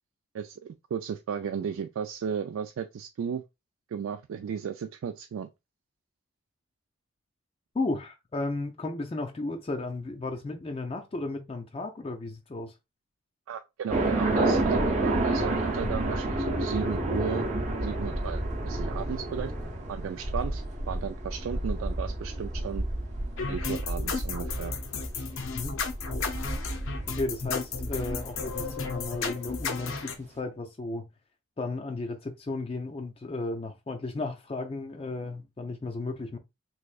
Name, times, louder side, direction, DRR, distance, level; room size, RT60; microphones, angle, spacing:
voice 1, 0.9-3.4 3.9-5.5 13.5-17.5 17.8-19.5 19.9-22.8 23.5-24.7, right 7 dB, 85° right, 0.3 m, -34 dB
voice 2, 7.7-12.7 25.5-25.7 27.1-31.0 31.6-36.4, left 2 dB, 30° left, 0.3 m, -34 dB
sound 1, 13.9-29.0, right 1 dB, 35° right, 0.7 m, -30 dB
sound 2, 23.4-30.2, left 4 dB, 80° left, 0.6 m, -34 dB
3.4 x 3.1 x 2.3 m
head